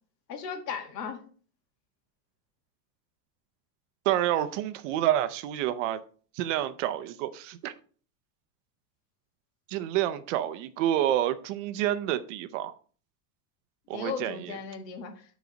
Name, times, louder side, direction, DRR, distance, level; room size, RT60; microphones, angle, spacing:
voice 1, 0.3-1.2 13.9-15.2, left 6 dB, 75° left, 1.9 m, -36 dB
voice 2, 4.1-6.0 6.3-7.7 9.7-12.7 13.9-14.6, right 12 dB, 50° right, 0.5 m, -28 dB
9.3 x 4.1 x 4.9 m
supercardioid pair, 180°, 49 cm